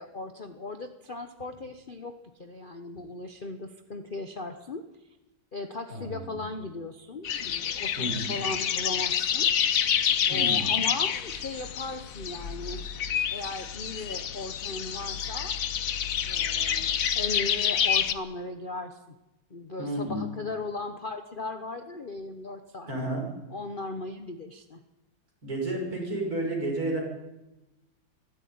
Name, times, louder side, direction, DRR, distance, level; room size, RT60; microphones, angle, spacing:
voice 1, 0.0-4.8 5.5-9.8 10.3-12.8 13.3-15.6 16.2-19.0 19.5-22.9 23.5-24.8, left 3 dB, 35° left, 8 dB, 1.0 m, -37 dB
voice 2, 5.9-6.4 8.0-8.4 10.3-10.7 19.8-20.2 22.9-23.2 25.4-27.0, right 1 dB, 50° right, 0 dB, 6.6 m, -31 dB
sound 1, 7.2-18.1, left 8 dB, 55° left, 1.1 m, -28 dB
22.0 x 14.5 x 9.5 m, 1.0 s
omnidirectional pair, 2.1 m